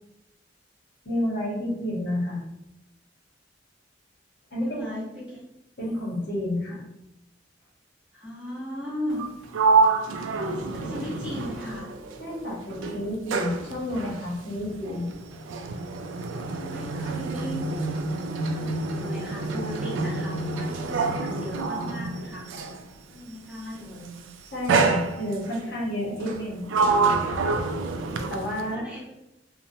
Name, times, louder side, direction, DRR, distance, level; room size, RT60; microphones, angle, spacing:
voice 1, 1.0-2.4 4.5-4.9 5.8-6.8 12.2-15.1 24.5-26.7 28.3-28.8, left 1 dB, 60° left, -4 dB, 0.9 m, -30 dB
voice 2, 4.6-5.4 8.1-9.2 10.5-11.9 16.4-17.6 18.5-22.5 23.1-24.2 28.5-29.1, left 1 dB, 5° right, -8 dB, 0.9 m, -37 dB
Sliding door, 9.1-12.4 12.7-22.9 23.8-24.1 24.7-25.6 26.2-28.7, right 4 dB, 90° right, 0.3 m, -27 dB
2.9 x 2.1 x 2.6 m, 0.87 s
head